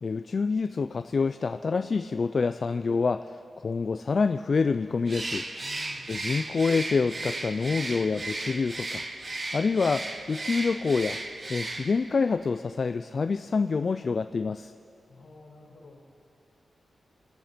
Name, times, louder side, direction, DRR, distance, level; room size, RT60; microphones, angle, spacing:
voice 1, 0.0-5.5 6.1-9.0 9.5-11.2 11.5-14.7, left 4 dB, 45° left, 10 dB, 0.3 m, -27 dB
Bird, 5.0-12.1, right 2 dB, 30° right, 1.0 m, -35 dB
voice 2, 5.6-6.1 15.1-16.0, left 3 dB, 70° left, -2 dB, 4.2 m, -50 dB
26.0 x 9.1 x 5.1 m, 2.6 s
wide cardioid pair, 120°, 0 cm